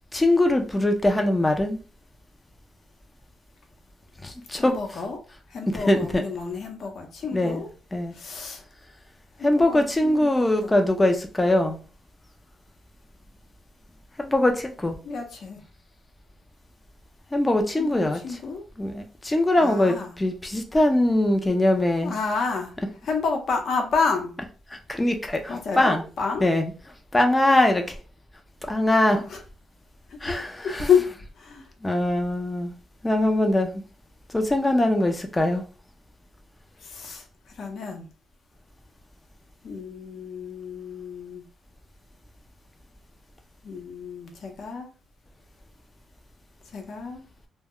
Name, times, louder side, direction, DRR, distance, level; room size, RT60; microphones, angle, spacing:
voice 1, 0.1-1.8 4.2-4.8 5.7-6.2 7.3-7.6 7.9-8.1 9.4-11.8 14.2-15.0 17.3-18.2 18.8-22.1 24.7-26.0 26.4-26.6 27.1-28.0 28.6-29.2 30.2-30.9 31.8-32.7 33.0-33.8 34.3-35.6, left 1 dB, 15° left, 0.4 m, -22 dB
voice 2, 4.5-5.2 5.5-7.7 8.1-8.6 9.4-10.7 15.0-15.6 17.8-18.7 19.6-20.1 22.0-22.8 23.0-24.4 25.5-26.5 29.2-29.4 30.1-30.2 30.6-31.1 31.3-31.7 36.8-38.1 39.6-41.4 43.6-44.9 46.7-47.2, left 5 dB, 55° left, 0.7 m, -29 dB
2.1 x 2.1 x 3.5 m
cardioid pair, 130°, 0 cm